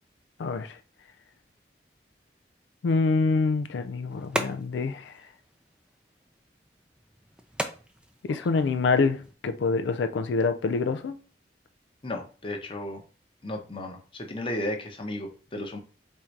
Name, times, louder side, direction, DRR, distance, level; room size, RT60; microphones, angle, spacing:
voice 1, 0.4-0.8 2.8-5.1 8.2-11.2, left 4 dB, 85° left, 0.4 m, -26 dB
sound 1, 3.3-9.3, right 1 dB, 5° right, 0.4 m, -39 dB
voice 2, 12.0-13.0 13.4-15.8, left 1 dB, 30° left, 0.8 m, -34 dB
3.7 x 2.7 x 4.4 m
head